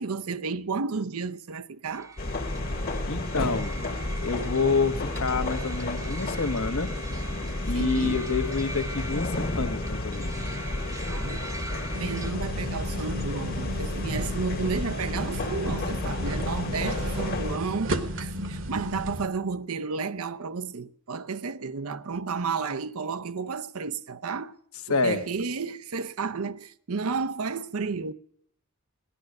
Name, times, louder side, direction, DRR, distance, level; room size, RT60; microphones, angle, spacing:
voice 1, 0.0-2.1 7.7-8.2 11.1-11.4 12.0-24.6 24.9-28.1, right 4 dB, 75° right, 0.7 m, -32 dB
sound 1, 1.9-12.3, right 2 dB, 15° right, 1.0 m, -42 dB
sound 2, 2.2-17.6, left 2 dB, 45° left, 1.3 m, -31 dB
voice 2, 3.1-3.8 4.2-6.9 7.7-10.6 24.9-25.2, left 4 dB, 70° left, 1.3 m, -28 dB
sound 3, 11.9-19.3, equal, 60° right, 1.3 m, -34 dB
17.0 x 11.5 x 6.5 m
head